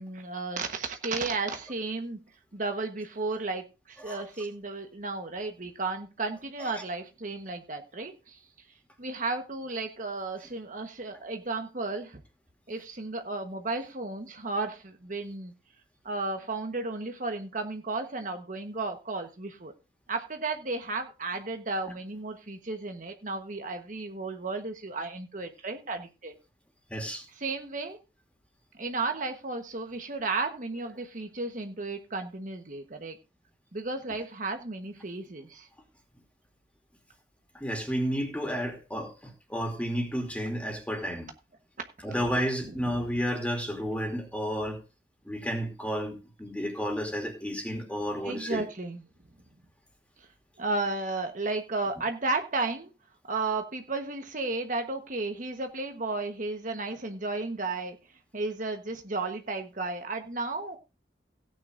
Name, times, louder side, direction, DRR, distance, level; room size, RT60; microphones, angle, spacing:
voice 1, 0.0-2.2 2.5-8.4 9.0-12.2 12.7-15.5 16.0-19.7 20.1-26.3 27.4-28.0 28.8-33.2 33.7-35.7 48.2-49.0 50.6-52.9 53.3-58.0 58.3-60.8, right 3 dB, 45° right, 1.2 m, -33 dB
voice 2, 26.9-27.2 37.5-39.1 39.5-41.3 42.0-44.8 45.2-48.6, equal, 10° left, 2.8 m, -31 dB
17.0 x 9.2 x 2.6 m
head